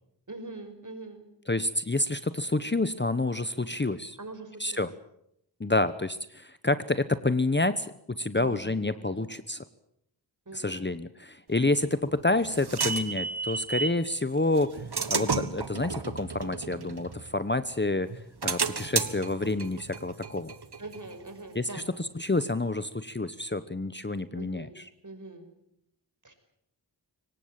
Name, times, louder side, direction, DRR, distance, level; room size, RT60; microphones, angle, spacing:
voice 1, 0.3-1.3 4.2-4.9 8.3-9.3 10.5-10.9 20.8-21.9 24.3-25.5 26.2-26.3, right 2 dB, 45° right, 7 dB, 5.4 m, -43 dB
voice 2, 1.5-4.2 4.6-4.9 5.6-9.6 10.5-14.8 15.1-18.1 18.4-20.5 21.5-24.9, left 2 dB, 25° left, 13 dB, 1.0 m, -28 dB
sound 1, 11.8-14.0 14.6-17.7 18.1-21.5, right 5 dB, 60° right, 1.5 m, -33 dB
24.0 x 19.0 x 8.9 m, 0.76 s
wide cardioid pair, 55°, 44 cm